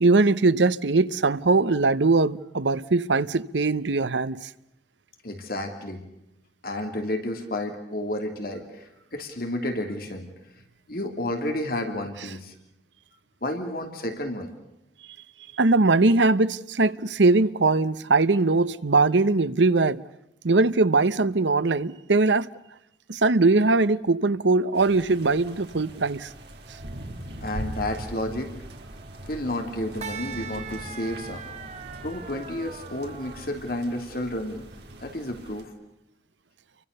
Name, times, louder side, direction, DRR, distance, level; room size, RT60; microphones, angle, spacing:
voice 1, 0.0-4.5 15.6-20.0 20.4-22.5 23.1-26.3, right 3 dB, 90° right, 0.9 m, -21 dB
voice 2, 5.2-6.0 6.6-10.3 10.9-12.5 13.4-14.5 27.4-28.6 29.3-31.5 32.0-34.6 35.0-35.7, left 1 dB, 55° left, 2.9 m, -31 dB
sound 1, 24.7-35.6, right 1 dB, 70° right, 3.6 m, -41 dB
sound 2, 25.3-33.5, right 6 dB, 40° right, 1.6 m, -43 dB
30.0 x 24.0 x 6.7 m
head